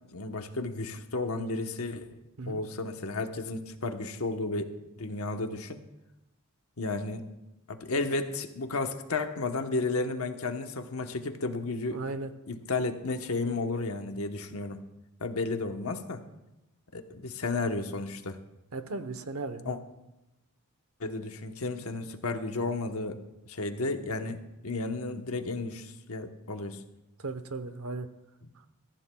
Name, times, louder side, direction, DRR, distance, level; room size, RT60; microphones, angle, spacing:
voice 1, 0.1-2.1 2.5-4.7 5.0-5.8 6.8-7.2 7.7-12.0 12.5-14.8 15.2-16.2 16.9-18.4 19.6-19.8 21.0-23.2 23.5-26.8, left 3 dB, 75° left, 6 dB, 1.1 m, -33 dB
voice 2, 11.9-12.3 18.7-19.7 27.2-28.1, right 3 dB, 75° right, 10 dB, 0.9 m, -36 dB
22.5 x 15.0 x 2.3 m, 0.93 s
head